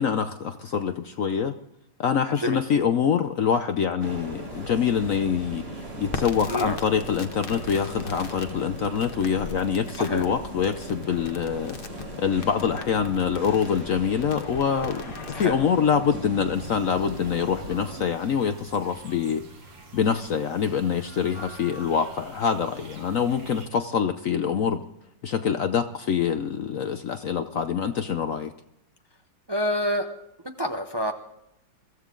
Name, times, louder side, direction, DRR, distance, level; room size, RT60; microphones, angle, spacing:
voice 1, 0.0-1.6 2.0-19.4 19.9-24.9 25.2-28.5, left 7 dB, 65° left, 9 dB, 0.8 m, -25 dB
sound 1, 4.0-18.0, right 1 dB, 60° right, 4.4 m, -39 dB
Crackle, 6.1-15.5, left 4 dB, 35° left, 1.0 m, -41 dB
voice 2, 6.5-6.8 9.9-10.2 15.3-15.6 29.5-30.1 30.4-31.1, equal, 40° right, 4 dB, 0.3 m, -27 dB
sound 2, 16.5-23.7, right 3 dB, 75° right, 2.6 m, -47 dB
22.5 x 15.0 x 3.8 m, 0.81 s
omnidirectional pair, 2.0 m